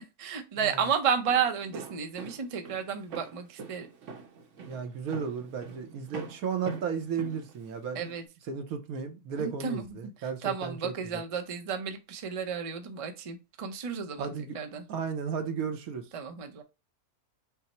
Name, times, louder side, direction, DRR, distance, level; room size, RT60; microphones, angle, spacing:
voice 1, 0.2-3.9 7.9-8.2 9.4-14.8 16.1-16.6, right 7 dB, 40° right, 0.5 m, -32 dB
Walk footsteps, 1.1-8.2, right 4 dB, 60° right, 1.1 m, -43 dB
voice 2, 4.7-8.0 8.5-11.2 14.2-14.6 14.9-16.1, right 6 dB, 75° right, 1.2 m, -34 dB
5.6 x 2.0 x 4.2 m
omnidirectional pair, 1.5 m